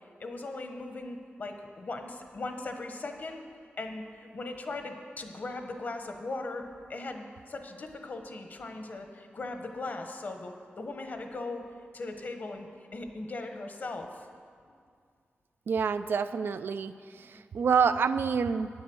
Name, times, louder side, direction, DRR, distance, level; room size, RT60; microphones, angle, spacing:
voice 1, 0.2-3.4 3.8-11.6 11.9-14.3 14.6-14.7, left 2 dB, 50° left, 5 dB, 1.1 m, -39 dB
voice 2, 15.7-18.7, right 6 dB, 75° right, 11 dB, 0.4 m, -27 dB
9.7 x 8.3 x 7.8 m, 2.2 s
wide cardioid pair, 120°, 4 cm